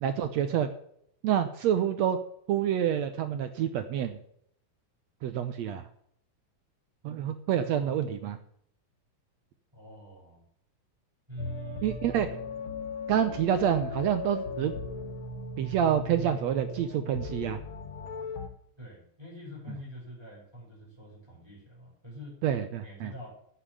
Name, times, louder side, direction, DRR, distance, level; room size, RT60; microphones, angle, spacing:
voice 1, 0.0-0.7 1.2-2.2 2.5-4.2 5.2-5.8 7.0-8.4 11.8-12.3 13.1-14.7 15.6-17.6 22.4-23.1, right 9 dB, 70° right, 9 dB, 1.7 m, -27 dB
voice 2, 9.7-10.4 11.3-12.0 18.8-22.4 22.8-23.3, equal, 5° right, -5 dB, 6.2 m, -44 dB
sound 1, 11.4-18.5, left 3 dB, 50° left, 1.8 m, -38 dB
9.8 x 8.0 x 8.1 m, 0.68 s
omnidirectional pair, 3.8 m